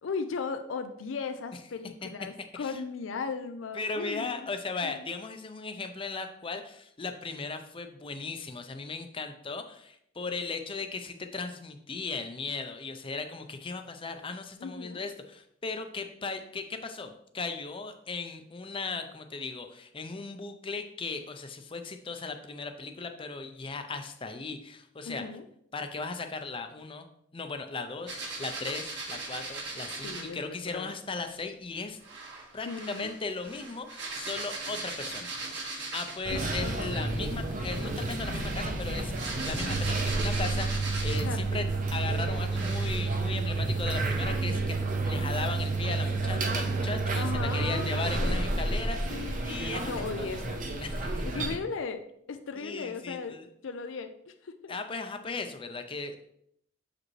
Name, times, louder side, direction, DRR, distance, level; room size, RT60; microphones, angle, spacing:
voice 1, 0.0-4.5 4.8-5.0 14.6-15.0 25.1-25.4 30.0-30.9 32.7-33.1 36.3-37.0 41.2-41.5 47.1-48.4 49.1-49.6 49.8-50.6 51.2-52.0 52.3-53.4 53.6-54.8, left 5 dB, 75° left, 8 dB, 0.5 m, -37 dB
voice 2, 2.0-2.8 3.7-25.3 25.7-27.1 27.3-32.0 32.5-35.3 35.9-49.9 50.2-51.6 52.6-53.5 54.7-56.3, left 4 dB, 25° left, 7 dB, 0.6 m, -37 dB
sound 1, 28.1-30.3 32.0-36.3 37.5-41.4 42.0-42.1 42.5-43.0, right 3 dB, 60° right, 1.7 m, -39 dB
sound 2, 36.2-51.6, right 3 dB, 40° right, 0.8 m, -30 dB
7.2 x 5.0 x 3.2 m, 0.72 s
head